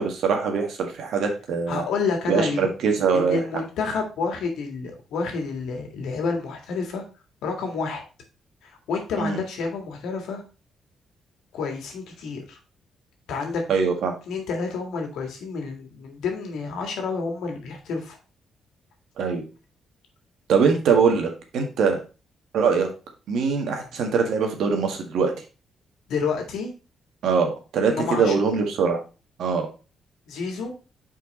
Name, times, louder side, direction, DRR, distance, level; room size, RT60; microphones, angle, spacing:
voice 1, 0.0-1.8 2.3-3.4 9.2-9.4 13.7-14.1 19.2-19.4 20.5-22.0 22.5-22.9 23.3-25.3 27.2-29.0 29.4-29.7, right 5 dB, 75° right, 4 dB, 1.6 m, -22 dB
voice 2, 1.7-2.7 3.1-7.0 7.4-8.0 8.6-10.4 11.5-12.6 13.3-13.6 14.3-18.2 26.1-26.7 27.9-28.5 30.3-30.7, left 4 dB, 85° left, 3 dB, 1.8 m, -29 dB
5.7 x 4.6 x 4.2 m, 0.33 s
cardioid pair, 130°, 0 cm